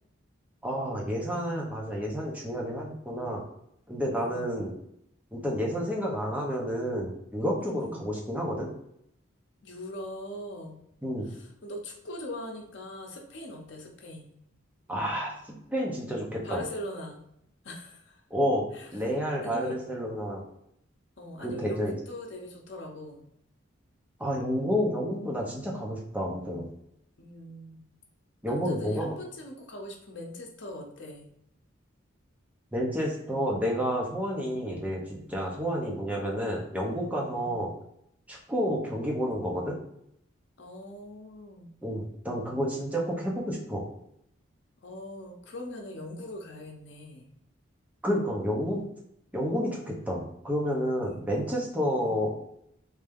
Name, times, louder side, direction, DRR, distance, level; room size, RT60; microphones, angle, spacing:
voice 1, 0.6-3.4 3.9-4.7 5.3-8.7 11.0-11.3 14.9-16.6 18.3-18.7 18.9-20.4 21.4-21.9 24.2-26.7 28.4-29.2 32.7-37.7 38.3-39.8 41.8-43.8 48.0-48.9 49.3-52.3, equal, 5° right, -3 dB, 0.7 m, -30 dB
voice 2, 4.2-4.6 7.6-8.0 9.6-10.8 11.3-14.3 16.4-17.2 17.6-18.2 18.7-18.9 19.4-19.8 21.2-23.2 27.2-27.9 28.5-31.3 37.3-37.8 40.6-41.7 44.8-47.3 51.0-51.6 52.0-52.2, left 1 dB, 60° left, 1 dB, 0.8 m, -41 dB
3.3 x 2.7 x 3.5 m, 0.75 s
head